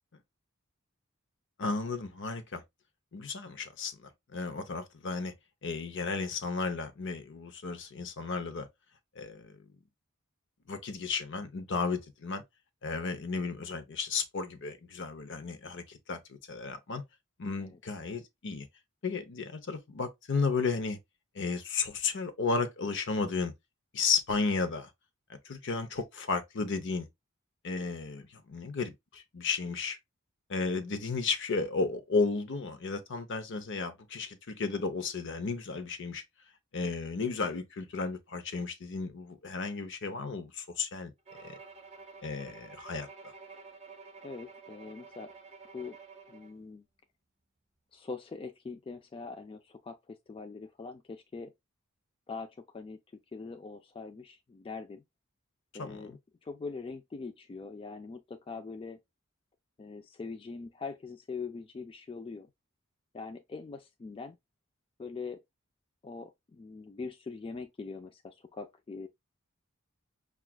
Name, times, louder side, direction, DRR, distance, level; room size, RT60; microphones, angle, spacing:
voice 1, 1.6-2.6 3.1-5.3 5.6-8.7 9.2-9.6 10.7-12.4 12.8-17.0 17.4-18.7 19.0-21.0 21.3-23.5 23.9-24.9 25.3-27.1 27.6-30.0 30.5-36.2 36.7-41.1 41.4-41.6 42.2-43.3 55.8-56.2, left 4 dB, 60° left, 0.7 m, -33 dB
Bowed string instrument, 41.3-46.6, right 4 dB, 30° right, 0.7 m, -50 dB
voice 2, 44.2-45.3 45.7-46.0 46.3-46.8 47.9-51.5 52.3-53.0 53.3-55.0 55.7-59.0 59.8-62.5 63.1-64.4 65.0-65.4 66.0-69.1, left 4 dB, 25° left, 0.3 m, -42 dB
5.8 x 2.4 x 2.2 m
head